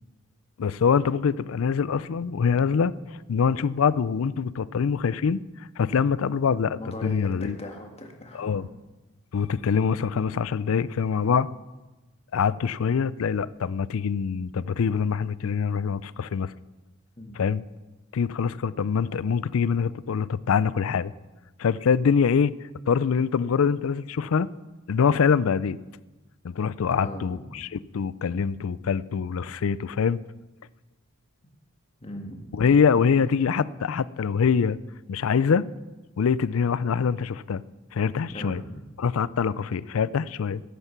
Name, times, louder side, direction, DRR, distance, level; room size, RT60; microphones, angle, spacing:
voice 1, 0.6-3.0 3.3-5.4 5.8-7.6 8.3-8.7 9.3-11.5 12.3-16.5 17.3-17.6 18.1-21.1 21.6-22.5 22.9-24.5 24.9-25.8 26.4-30.2 32.5-34.8 35.1-35.7 36.2-37.6 37.9-38.6 39.0-40.6, left 6 dB, 70° left, 0.4 m, -24 dB
voice 2, 6.7-8.6 17.2-17.4 27.0-27.4 32.0-32.4 32.7-33.3 38.3-38.8, left 1 dB, 30° left, 1.9 m, -39 dB
13.5 x 10.5 x 5.8 m
head